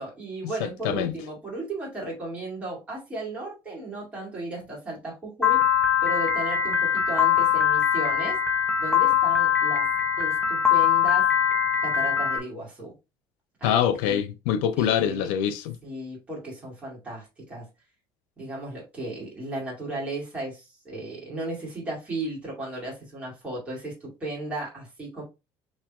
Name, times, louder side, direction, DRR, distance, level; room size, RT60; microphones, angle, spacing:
voice 1, 0.0-5.6 6.0-8.4 8.8-9.9 10.2-11.3 11.8-13.0 13.6-14.2 14.8-15.3 15.8-17.7 18.4-25.2, right 2 dB, 15° right, 2.3 m, -35 dB
voice 2, 0.6-1.1 13.6-15.8, left 9 dB, 80° left, 0.6 m, -25 dB
Piano, 5.4-12.4, left 8 dB, 5° left, 0.6 m, -22 dB
5.7 x 3.3 x 2.4 m
cardioid pair, 175°, 9 cm